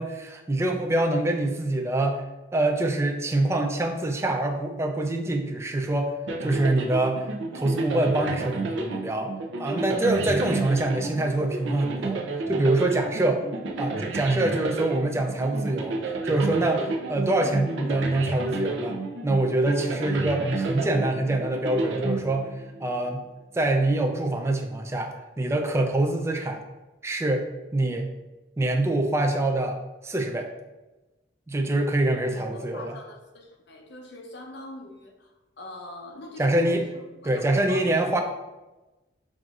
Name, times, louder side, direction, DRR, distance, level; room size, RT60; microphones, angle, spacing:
voice 1, 0.0-2.2 2.5-6.1 6.4-7.3 7.5-9.3 9.6-12.2 12.5-13.4 13.8-16.0 16.2-22.5 22.8-23.2 23.5-26.6 27.0-27.4 27.7-28.1 28.6-29.8 30.0-30.5 31.5-33.0 36.4-36.8 37.2-38.2, right 2 dB, 15° right, 3 dB, 0.3 m, -25 dB
sound 1, 6.3-22.8, right 3 dB, 70° right, 0.5 m, -31 dB
voice 2, 32.2-38.2, left 1 dB, 60° left, 2 dB, 0.6 m, -42 dB
6.1 x 2.6 x 2.4 m, 1.1 s
head